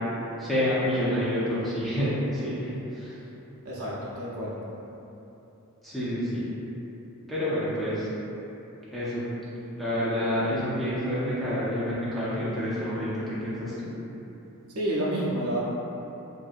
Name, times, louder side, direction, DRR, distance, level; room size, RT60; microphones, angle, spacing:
voice 1, 0.4-3.2 5.8-6.5 7.3-8.1 8.9-9.3 9.8-13.9, equal, ahead, -11 dB, 0.5 m, -28 dB
voice 2, 3.6-4.6 14.7-15.6, right 1 dB, 70° right, -7 dB, 0.6 m, -29 dB
2.7 x 2.6 x 2.4 m, 3.0 s
head